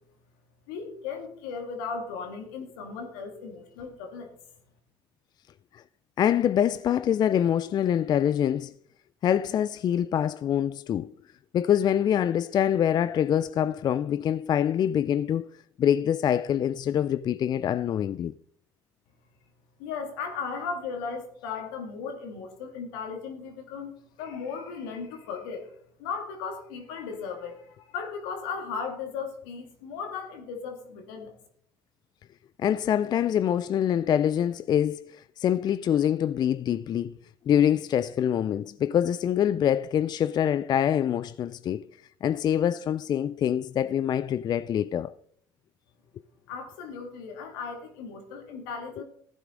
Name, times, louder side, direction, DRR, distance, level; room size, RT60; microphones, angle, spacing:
voice 1, 0.7-4.4 19.8-31.3 46.5-49.0, left 5 dB, 80° left, 2.2 m, -36 dB
voice 2, 6.2-8.7 9.2-11.1 11.5-15.5 15.8-18.3 32.6-37.1 37.5-41.8 42.2-45.1 49.0-49.1, left 9 dB, 40° left, 0.3 m, -25 dB
15.0 x 9.5 x 3.8 m
hypercardioid pair, 75°, 11 cm